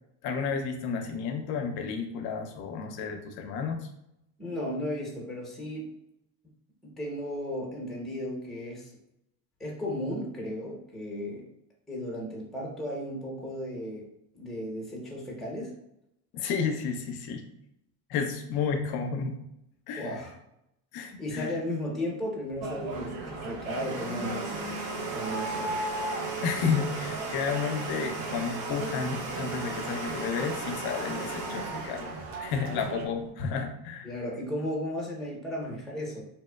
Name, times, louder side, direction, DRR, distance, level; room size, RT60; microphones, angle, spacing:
voice 1, 0.2-3.9 16.3-17.4 18.1-19.4 19.9-20.1 20.9-21.6 26.4-32.1 32.4-34.1, left 6 dB, 50° left, 5 dB, 0.5 m, -31 dB
voice 2, 4.4-5.9 6.8-8.9 9.6-11.4 11.9-14.1 14.3-15.7 20.0-20.3 21.2-24.5 25.1-25.8 34.0-36.2, left 1 dB, ahead, -2 dB, 0.7 m, -35 dB
Domestic sounds home sounds, 22.5-33.2, right 3 dB, 40° right, 0.9 m, -37 dB
sound 1, 22.6-33.1, right 2 dB, 60° right, 0.6 m, -38 dB
2.8 x 2.1 x 2.2 m, 0.82 s
supercardioid pair, 90°, 49 cm